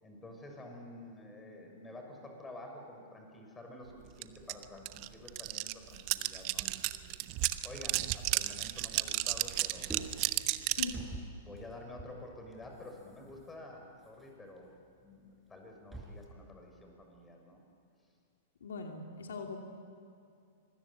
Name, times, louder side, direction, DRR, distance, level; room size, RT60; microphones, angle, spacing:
voice 1, 0.0-7.2 7.6-9.9 11.4-14.7 15.0-17.6, left 1 dB, 15° left, 2 dB, 6.3 m, -50 dB
sound 1, 4.2-4.3 4.5-11.0, right 19 dB, 45° right, 1.0 m, -33 dB
sound 2, 9.4-16.3, right 2 dB, 10° right, 5.0 m, -49 dB
voice 2, 18.6-19.6, left 4 dB, 75° left, 3 dB, 2.5 m, -40 dB
26.0 x 20.5 x 8.4 m, 2.5 s
hypercardioid pair, 105°, 0 cm